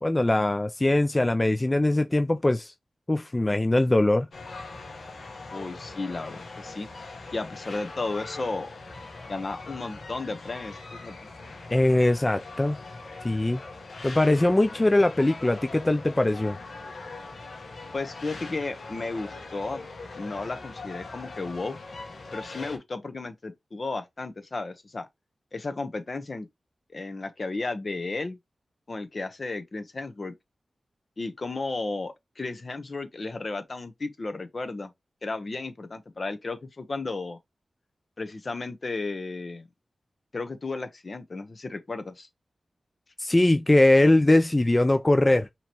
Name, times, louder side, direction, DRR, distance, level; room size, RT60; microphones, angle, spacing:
voice 1, 0.0-2.7 3.1-4.3 11.7-12.8 13.2-13.6 14.0-16.6 43.2-45.5, left 1 dB, 25° left, 0.4 m, -21 dB
sound 1, 4.3-22.8, left 3 dB, 75° left, 1.3 m, -41 dB
voice 2, 5.5-6.9 7.3-8.7 9.3-11.2 17.9-19.9 20.1-21.8 22.3-25.1 25.5-26.5 26.9-28.4 28.9-30.3 31.2-34.9 35.2-37.4 38.2-39.7 40.3-42.3, left 3 dB, 55° left, 1.0 m, -34 dB
5.7 x 3.1 x 2.9 m
cardioid pair, 55°, 0 cm